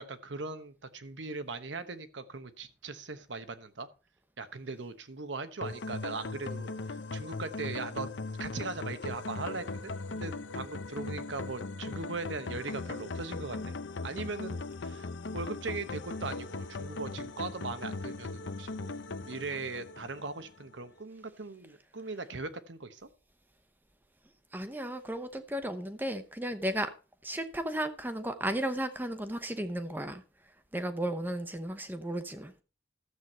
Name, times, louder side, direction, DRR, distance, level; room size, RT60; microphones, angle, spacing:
voice 1, 0.0-3.9 4.4-8.1 8.4-13.8 14.0-15.1 15.3-19.0 19.3-23.1, right 3 dB, 85° right, 1.1 m, -39 dB
sound 1, 5.6-20.7, left 3 dB, 85° left, 0.7 m, -39 dB
voice 2, 24.5-26.9 27.2-30.2 30.7-32.5, right 1 dB, 10° right, 0.8 m, -34 dB
13.0 x 7.9 x 4.3 m
head